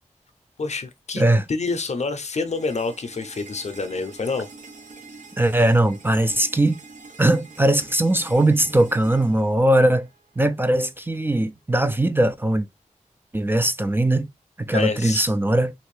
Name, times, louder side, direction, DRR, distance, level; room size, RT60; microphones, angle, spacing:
voice 1, 0.6-1.2 1.5-4.5 14.7-15.3, left 4 dB, 60° left, 0.6 m, -27 dB
sound 1, 2.5-10.5, right 4 dB, 75° right, 0.9 m, -45 dB
voice 2, 5.4-6.8 7.2-10.1 10.4-12.7 13.3-14.3 14.6-15.7, right 1 dB, 15° right, 0.4 m, -20 dB
2.9 x 2.5 x 3.2 m
cardioid pair, 55°, 13 cm